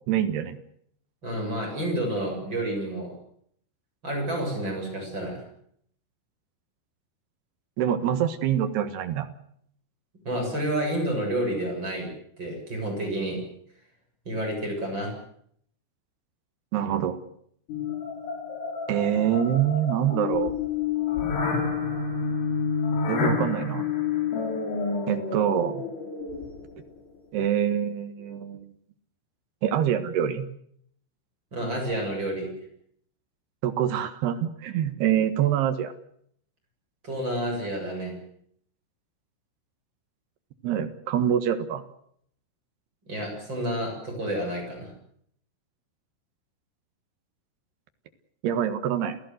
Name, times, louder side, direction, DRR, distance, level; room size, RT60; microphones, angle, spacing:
voice 1, 0.1-0.6 7.8-9.3 16.7-17.2 18.9-20.5 23.1-23.9 25.1-25.8 27.3-28.7 29.6-30.5 33.6-35.9 40.6-41.8 48.4-49.2, right 10 dB, 65° right, 10 dB, 3.0 m, -25 dB
voice 2, 1.2-3.1 4.0-5.4 10.2-12.1 12.4-13.4 14.3-15.1 31.5-32.5 37.0-38.1 43.0-44.9, right 1 dB, 20° right, 1 dB, 7.7 m, -29 dB
sound 1, 17.7-26.8, left 5 dB, 75° left, 7.1 m, -29 dB
28.5 x 16.5 x 7.9 m, 0.67 s
omnidirectional pair, 5.9 m